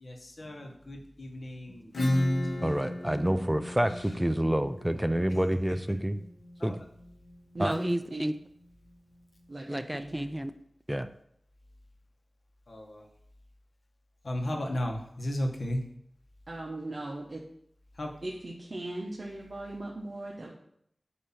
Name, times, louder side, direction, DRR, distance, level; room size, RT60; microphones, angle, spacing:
voice 1, 0.0-2.2 3.9-4.1 4.9-5.3 5.7-5.8 6.6-6.7 12.7-13.0 14.2-15.8 18.0-18.1, left 1 dB, 60° left, 1.2 m, -35 dB
Acoustic guitar / Strum, 1.9-7.3, left 1 dB, 90° left, 1.1 m, -33 dB
voice 2, 2.6-6.2 6.6-6.8 7.6-8.3 9.7-10.5 10.9-11.1, right 1 dB, 10° right, 0.4 m, -28 dB
voice 3, 7.5-8.3 9.5-10.3 16.5-17.4 18.2-20.5, right 2 dB, 55° right, 1.0 m, -38 dB
8.3 x 2.8 x 5.7 m
wide cardioid pair, 65°, 0 cm